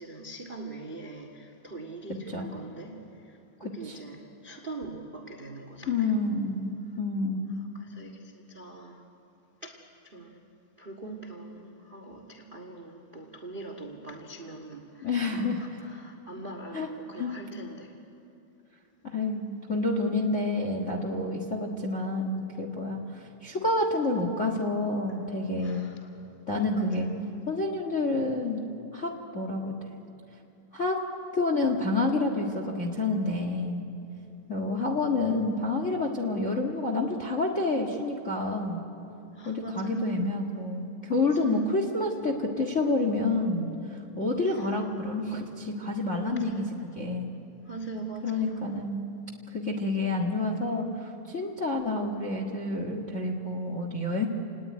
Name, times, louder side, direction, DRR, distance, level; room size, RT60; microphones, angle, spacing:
voice 1, 0.0-6.2 7.7-9.0 9.6-10.4 10.8-18.0 25.1-25.2 25.6-26.2 26.7-27.1 39.3-40.2 41.2-41.7 44.4-44.8 46.2-46.8 47.6-48.8, right 3 dB, 40° right, 4 dB, 0.7 m, -42 dB
voice 2, 5.9-7.6 15.0-15.6 16.7-16.9 17.2-17.3 19.0-25.9 26.5-27.1 27.5-28.6 28.9-29.7 30.7-31.0 31.3-33.8 34.5-38.8 39.4-46.6 46.9-47.3 48.2-49.0 49.5-54.3, left 2 dB, 50° left, 2 dB, 0.8 m, -29 dB
29.0 x 19.5 x 9.5 m, 2.9 s
omnidirectional pair, 4.3 m